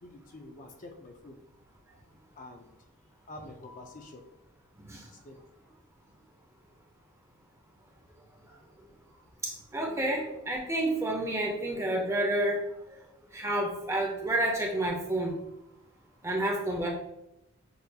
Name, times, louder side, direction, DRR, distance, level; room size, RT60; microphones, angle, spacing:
voice 1, 0.0-1.4 2.4-2.7 3.3-4.3 5.2-5.4, left 2 dB, 35° left, 3 dB, 0.4 m, -47 dB
voice 2, 9.4-12.6 13.3-15.4 16.2-16.9, right 1 dB, 10° right, 0 dB, 0.6 m, -29 dB
6.6 x 2.4 x 2.7 m, 0.86 s
head